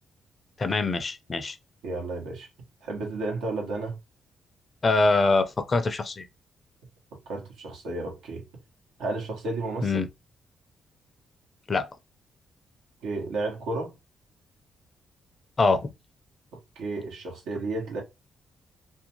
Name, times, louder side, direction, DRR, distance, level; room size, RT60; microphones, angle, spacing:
voice 1, 0.6-1.6 4.8-6.3 9.8-10.1 11.7-11.9 15.6-15.9, left 3 dB, 40° left, 0.5 m, -24 dB
voice 2, 1.8-2.5 2.8-3.9 7.3-8.4 9.0-10.1 13.0-13.9 16.8-18.0, right 2 dB, 85° right, 1.0 m, -32 dB
2.6 x 2.2 x 2.9 m
supercardioid pair, 60°, 0 cm